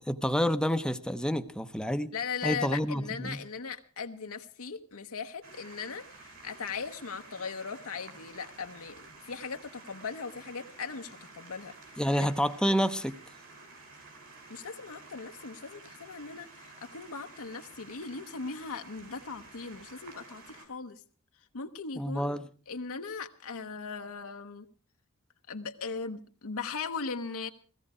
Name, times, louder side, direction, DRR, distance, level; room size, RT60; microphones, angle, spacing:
voice 1, 0.0-2.1 2.4-3.4 12.0-13.2 22.0-22.5, equal, 5° left, 0.7 m, -28 dB
voice 2, 2.1-11.8 12.1-12.2 14.5-21.0 21.5-22.3 22.7-24.7 25.5-27.5, left 5 dB, 65° left, 0.9 m, -39 dB
sound 1, 5.4-20.7, right 3 dB, 65° right, 4.6 m, -51 dB
16.0 x 15.5 x 4.9 m
head